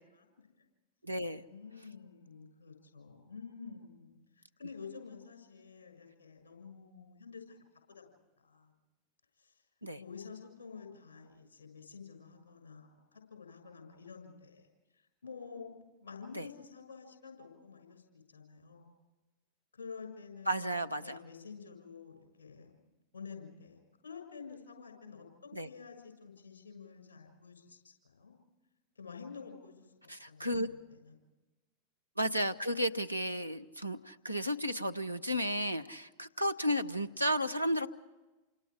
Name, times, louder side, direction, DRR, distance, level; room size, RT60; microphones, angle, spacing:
voice 1, 0.1-0.5 1.3-7.6 7.9-8.1 8.4-8.7 9.4-9.5 10.0-14.7 15.2-18.9 19.7-20.8 21.0-22.8 23.1-28.4 28.9-31.2, left 5 dB, 70° left, 5 dB, 6.6 m, -50 dB
voice 2, 1.0-1.4 9.8-10.0 16.3-16.5 20.5-21.2 25.5-25.7 30.1-30.7 32.2-37.9, equal, 90° right, 9 dB, 1.0 m, -33 dB
29.0 x 26.5 x 5.0 m, 1.1 s
figure-of-eight pair, 90°, 0 cm